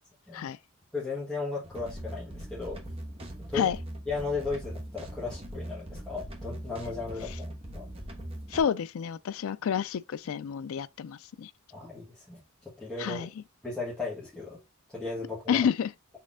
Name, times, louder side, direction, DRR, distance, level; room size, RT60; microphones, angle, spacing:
voice 1, 0.9-2.8 3.5-3.7 4.1-7.9 11.7-12.4 12.8-13.2 13.6-14.6 14.9-15.6, left 3 dB, 5° left, 1.6 m, -35 dB
sound 1, 1.6-8.6, right 1 dB, 25° right, 1.3 m, -41 dB
voice 2, 8.5-11.5 13.0-13.4 15.5-15.9, left 8 dB, 70° left, 0.4 m, -29 dB
4.2 x 3.5 x 3.6 m
head